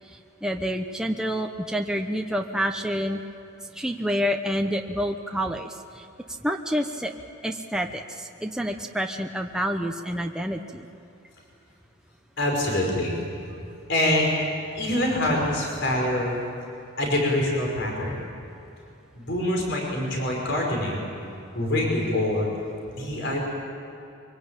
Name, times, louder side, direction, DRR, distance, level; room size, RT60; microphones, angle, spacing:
voice 1, 0.4-3.2 3.7-6.1 6.4-7.1 7.4-10.9, equal, 5° right, 3 dB, 0.9 m, -28 dB
voice 2, 12.4-13.2 13.9-14.3 14.7-16.4 17.0-18.1 19.1-21.1 21.5-22.5 22.9-23.4, left 1 dB, 60° left, -1 dB, 5.4 m, -25 dB
24.0 x 23.5 x 9.0 m, 2.7 s
head